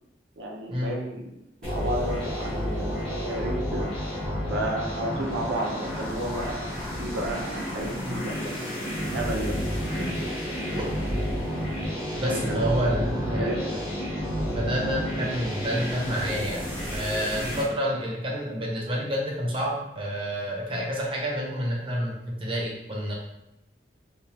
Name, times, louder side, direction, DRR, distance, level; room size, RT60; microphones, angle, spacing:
voice 1, 0.4-1.2 1.6-3.9 4.5-8.6 9.1-9.6 9.9-10.1 12.3-13.5, right 1 dB, 90° right, 0 dB, 0.7 m, -32 dB
sound 1, 1.6-17.6, equal, 5° left, 1.5 m, -31 dB
voice 2, 12.2-13.8 14.5-23.1, equal, 30° right, -3 dB, 0.7 m, -29 dB
3.5 x 2.9 x 2.8 m, 0.87 s
head